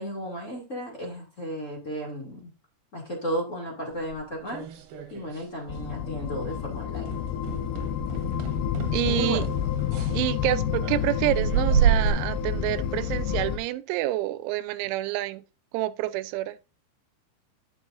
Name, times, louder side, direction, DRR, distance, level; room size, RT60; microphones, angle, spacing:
voice 1, 0.0-2.5 2.9-4.6 5.1-7.1 9.0-9.4, right 1 dB, 35° left, 1.2 m, -34 dB
sound 1, 4.0-5.5 5.7-6.1 6.4-6.6 7.0-12.1, right 8 dB, 65° right, 2.6 m, -29 dB
sound 2, 5.7-13.6, left 9 dB, 80° left, 2.5 m, -29 dB
voice 2, 8.9-9.4 10.1-15.4 15.7-16.6, right 15 dB, 85° right, 3.0 m, -28 dB
11.0 x 6.3 x 2.5 m
omnidirectional pair, 5.4 m